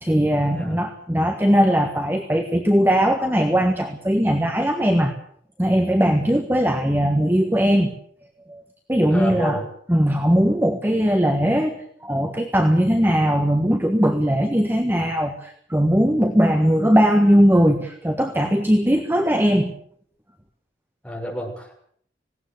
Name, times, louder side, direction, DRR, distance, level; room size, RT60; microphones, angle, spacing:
voice 1, 0.0-5.1 5.6-7.9 8.5-8.6 8.9-9.6 9.9-11.8 12.0-19.7, equal, 10° right, 5 dB, 1.4 m, -19 dB
voice 2, 9.1-9.7 21.0-21.7, equal, 5° left, -1 dB, 6.3 m, -29 dB
19.5 x 17.5 x 8.1 m, 0.63 s
head